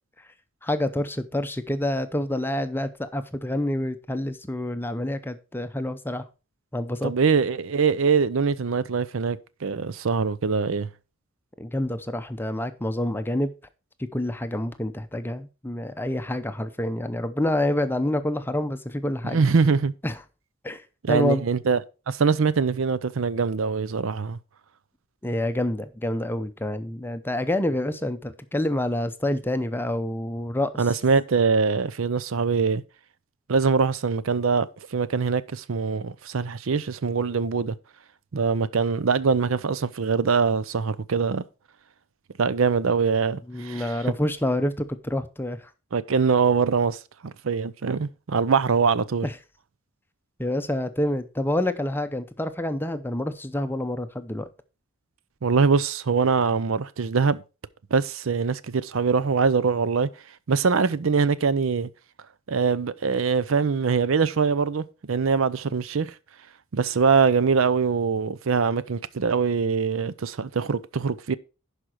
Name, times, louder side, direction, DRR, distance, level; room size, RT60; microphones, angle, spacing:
voice 1, 0.6-6.2 6.7-7.1 11.6-13.5 14.1-19.4 20.0-20.2 20.6-21.4 25.2-30.7 43.5-45.7 49.2-49.3 50.4-54.5, left 1 dB, 10° left, 0.6 m, -27 dB
voice 2, 7.0-10.9 19.2-19.9 21.0-21.8 22.1-24.4 30.8-32.8 33.5-37.8 38.3-41.4 42.4-43.9 45.9-49.3 55.4-57.4 57.9-60.1 60.5-61.9 62.5-66.1 66.7-71.3, right 5 dB, 70° right, 0.5 m, -23 dB
11.0 x 5.0 x 4.4 m
head